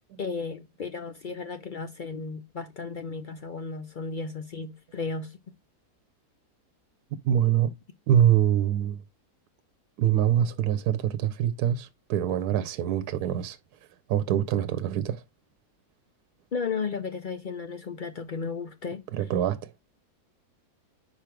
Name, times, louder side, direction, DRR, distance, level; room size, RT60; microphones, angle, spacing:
voice 1, 0.2-5.4 16.5-19.0, left 4 dB, 65° left, 0.5 m, -34 dB
voice 2, 7.2-7.7 8.1-9.0 10.0-13.6 14.1-15.2 19.1-19.7, right 10 dB, 80° right, 1.1 m, -24 dB
5.0 x 4.8 x 4.4 m
omnidirectional pair, 1.6 m